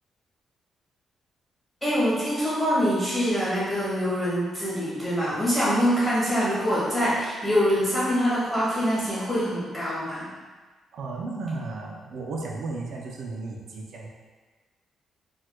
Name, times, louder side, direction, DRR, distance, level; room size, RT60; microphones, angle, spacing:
voice 1, 1.8-10.3, equal, 5° left, -10 dB, 1.3 m, -24 dB
voice 2, 10.9-14.1, right 3 dB, 70° right, -1 dB, 0.5 m, -34 dB
4.3 x 2.2 x 2.2 m, 1.3 s
cardioid pair, 110°, 0 cm